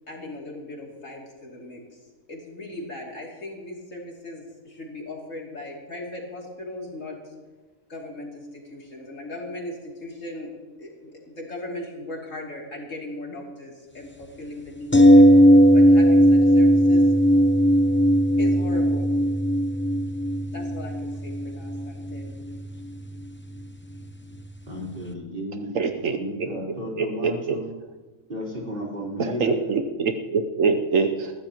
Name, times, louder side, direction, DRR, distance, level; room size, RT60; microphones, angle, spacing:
voice 1, 0.1-2.0 2.3-7.3 7.9-10.5 10.8-17.1 18.4-19.1 20.5-22.4, left 1 dB, 65° left, -2 dB, 3.2 m, -38 dB
sound 1, 14.9-24.8 25.1-25.2, equal, 15° left, 0.5 m, -18 dB
voice 2, 24.7-25.7 26.1-27.7 28.3-29.5, equal, 40° right, -4 dB, 4.2 m, -33 dB
voice 3, 25.7-26.2 27.0-27.6 29.2-31.3, right 4 dB, 70° right, 6 dB, 1.2 m, -24 dB
20.5 x 14.5 x 3.0 m, 1.3 s
omnidirectional pair, 1.5 m